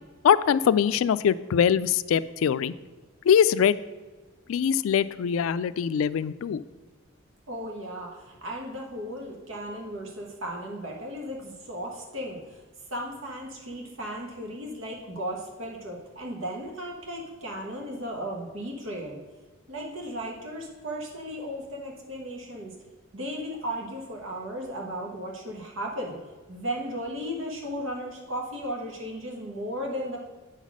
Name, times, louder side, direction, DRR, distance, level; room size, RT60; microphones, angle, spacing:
voice 1, 0.2-2.7 3.3-3.8 4.5-6.6, left 8 dB, 90° left, 16 dB, 0.3 m, -22 dB
voice 2, 7.5-12.6 12.9-19.2 19.7-22.7 23.1-26.2 26.5-30.2, equal, 70° right, 0 dB, 1.3 m, -35 dB
9.0 x 4.1 x 6.1 m, 1.3 s
head